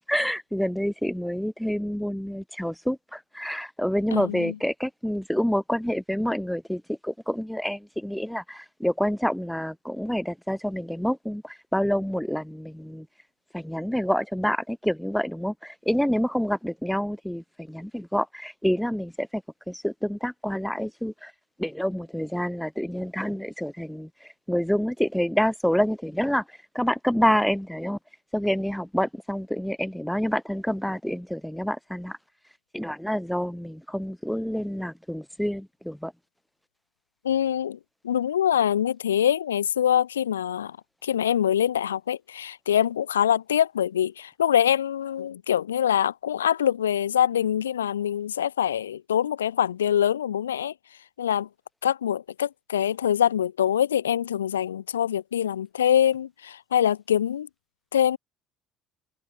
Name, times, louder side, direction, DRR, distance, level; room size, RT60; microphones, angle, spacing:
voice 1, 0.1-13.1 13.5-19.4 19.7-21.3 21.6-24.1 24.5-26.4 26.7-28.0 28.3-32.2 32.7-36.1, equal, ahead, 4.0 m, -27 dB
voice 2, 4.1-4.5 37.2-37.8 38.0-40.8 41.0-50.7 51.2-51.5 51.8-57.5 57.9-58.2, left 9 dB, 75° left, 1.1 m, -24 dB
open air
figure-of-eight pair, 55°, 0 cm